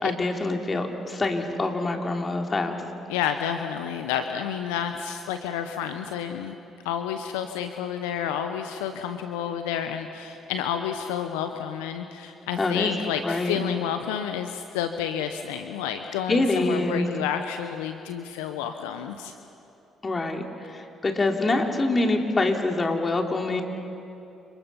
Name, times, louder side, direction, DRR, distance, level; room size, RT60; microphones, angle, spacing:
voice 1, 0.0-2.8 12.6-12.9 13.2-13.6 16.3-17.0 20.0-23.6, left 2 dB, 30° left, 2 dB, 3.3 m, -25 dB
voice 2, 3.1-6.5 6.8-19.3, left 9 dB, 80° left, 7 dB, 0.9 m, -30 dB
29.5 x 26.5 x 5.8 m, 2.7 s
hypercardioid pair, 45°, 0 cm